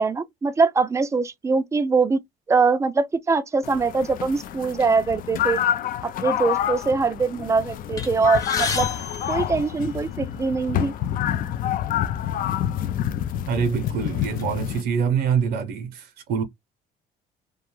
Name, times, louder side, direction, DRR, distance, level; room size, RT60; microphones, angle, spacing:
voice 1, 0.0-2.2 2.5-5.6 6.0-8.9 9.3-10.9, right 4 dB, 15° right, 0.3 m, -22 dB
sound 1, 3.6-14.8, left 11 dB, 55° left, 0.4 m, -27 dB
sound 2, 8.0-10.3 11.1-11.3 11.6-11.8 12.6-12.8 13.3-14.4, left 4 dB, 20° left, 0.8 m, -33 dB
voice 2, 13.4-16.4, right 7 dB, 70° right, 0.6 m, -25 dB
2.4 x 2.2 x 2.9 m
cardioid pair, 110°, 17 cm